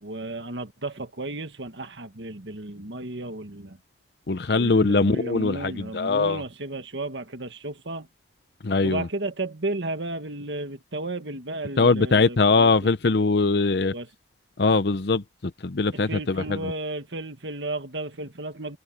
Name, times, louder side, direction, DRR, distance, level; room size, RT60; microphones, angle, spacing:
voice 1, 0.0-3.8 4.5-8.1 8.8-12.7 13.9-14.1 15.9-18.8, right 2 dB, 90° right, 1.9 m, -33 dB
voice 2, 4.3-6.4 8.6-9.1 11.8-13.9 14.6-16.7, left 3 dB, 65° left, 0.7 m, -22 dB
head